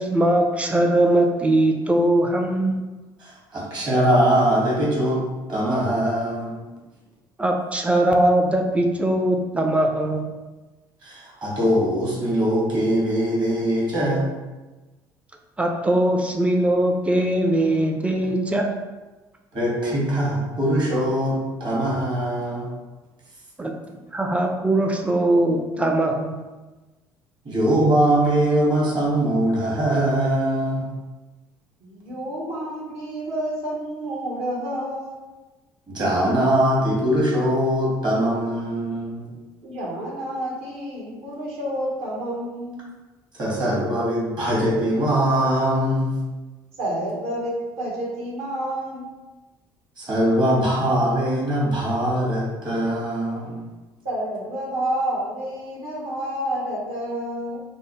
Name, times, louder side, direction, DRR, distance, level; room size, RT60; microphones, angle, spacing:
voice 1, 0.0-2.8 7.4-10.3 15.6-18.7 23.6-23.7 24.1-26.3, right 1 dB, 10° right, 2 dB, 0.4 m, -20 dB
voice 2, 3.2-5.2 5.5-6.6 11.0-14.3 19.5-22.7 27.4-30.9 35.9-39.3 43.3-46.2 50.0-53.6, right 1 dB, 35° right, -5 dB, 1.4 m, -22 dB
voice 3, 31.8-35.2 39.6-42.8 46.8-49.1 54.0-57.6, right 1 dB, 55° right, -5 dB, 1.1 m, -29 dB
3.4 x 2.1 x 3.0 m, 1.2 s
figure-of-eight pair, 55°, 12 cm